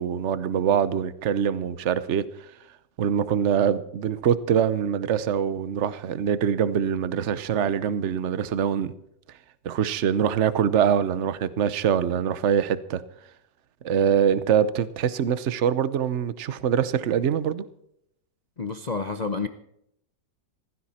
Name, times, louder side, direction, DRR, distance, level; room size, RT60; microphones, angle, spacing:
voice 1, 0.0-2.2 3.0-8.9 9.6-13.0 13.8-17.6, right 8 dB, 50° right, 15 dB, 1.0 m, -24 dB
voice 2, 18.6-19.5, left 4 dB, 55° left, 8 dB, 0.4 m, -29 dB
16.0 x 15.0 x 4.3 m, 0.74 s
omnidirectional pair, 2.0 m